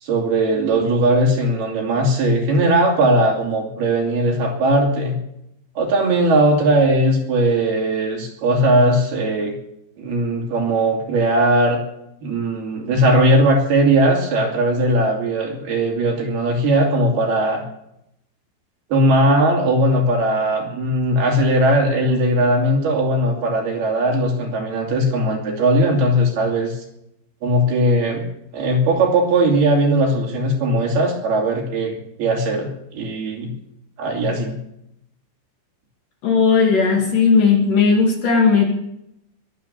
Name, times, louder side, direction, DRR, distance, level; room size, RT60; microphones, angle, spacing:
voice 1, 0.0-5.2 5.8-9.5 10.0-11.8 12.2-17.6 18.9-26.8 27.4-28.3 28.5-33.5 34.0-34.6, right 1 dB, 60° right, 1 dB, 4.5 m, -18 dB
voice 2, 36.2-38.6, left 5 dB, 50° left, 1 dB, 3.6 m, -16 dB
22.0 x 8.5 x 7.0 m, 0.79 s
omnidirectional pair, 5.4 m